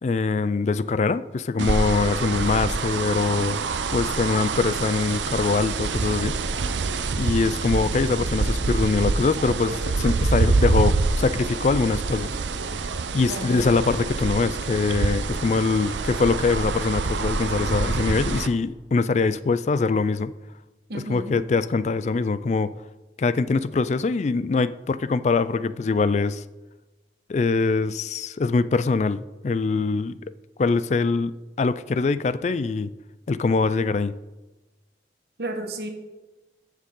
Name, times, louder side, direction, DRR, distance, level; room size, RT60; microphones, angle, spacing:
voice 1, 0.0-3.6 3.9-6.4 7.2-12.3 13.1-20.3 20.9-22.7 23.2-26.4 27.3-30.2 30.6-31.3 31.6-32.9 33.3-34.1, left 4 dB, 40° left, 16 dB, 0.3 m, -23 dB
sound 1, 1.6-18.5, right 3 dB, 90° right, 0.6 m, -26 dB
voice 2, 13.2-13.6 20.9-21.3 35.4-35.9, right 2 dB, 60° right, 4 dB, 1.3 m, -32 dB
14.0 x 6.5 x 3.7 m, 1.1 s
head